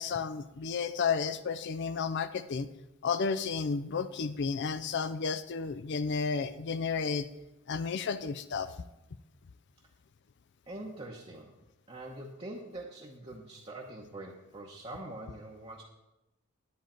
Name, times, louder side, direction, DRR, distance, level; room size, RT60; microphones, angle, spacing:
voice 1, 0.0-2.7 3.0-7.3 7.7-8.7, left 5 dB, 55° left, 12 dB, 0.4 m, -32 dB
voice 2, 10.7-11.5 11.9-15.8, right 1 dB, 25° right, -3 dB, 0.9 m, -44 dB
10.5 x 9.2 x 4.4 m, 0.97 s
head